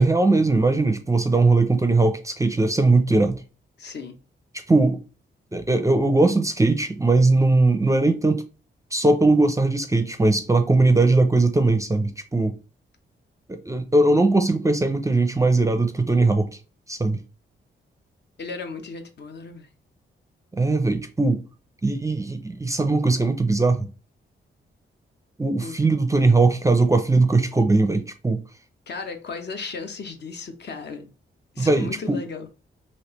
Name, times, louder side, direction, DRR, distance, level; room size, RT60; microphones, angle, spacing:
voice 1, 0.0-3.4 4.7-5.0 5.5-8.4 8.9-12.5 13.5-16.5 16.9-17.2 20.5-21.4 21.8-23.9 25.4-28.4 31.6-32.2, right 2 dB, 15° right, 0.5 m, -20 dB
voice 2, 3.8-4.2 18.4-19.7 25.6-25.8 28.9-31.1 31.5-32.5, left 4 dB, 55° left, 0.7 m, -35 dB
3.1 x 2.8 x 3.0 m
cardioid pair, 80°, 21 cm